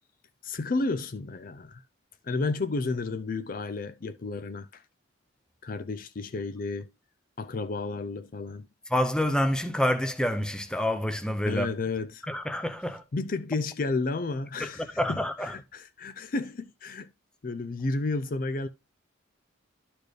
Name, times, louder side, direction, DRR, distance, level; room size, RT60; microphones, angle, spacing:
voice 1, 0.4-1.8 2.2-4.8 5.6-6.9 7.4-8.7 11.4-12.2 13.1-17.1 17.4-18.7, left 3 dB, 45° left, 0.4 m, -32 dB
voice 2, 8.9-11.7 12.3-13.0 14.6-15.5, left 1 dB, 5° left, 0.7 m, -27 dB
12.0 x 4.3 x 3.2 m
head